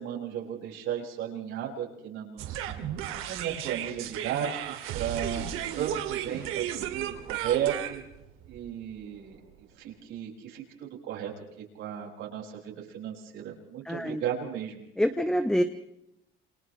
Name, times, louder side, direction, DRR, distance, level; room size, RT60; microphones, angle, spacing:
voice 1, 0.0-2.9 3.3-5.5 5.7-8.0 8.5-9.4 9.8-11.3 11.7-14.9, right 9 dB, 70° right, -1 dB, 6.6 m, -34 dB
sound 1, 2.4-9.5, right 10 dB, 85° right, 2.7 m, -34 dB
voice 2, 13.9-14.2 15.0-15.6, equal, 5° left, 8 dB, 0.8 m, -26 dB
28.5 x 27.5 x 3.3 m, 0.81 s
cardioid pair, 175°, 21 cm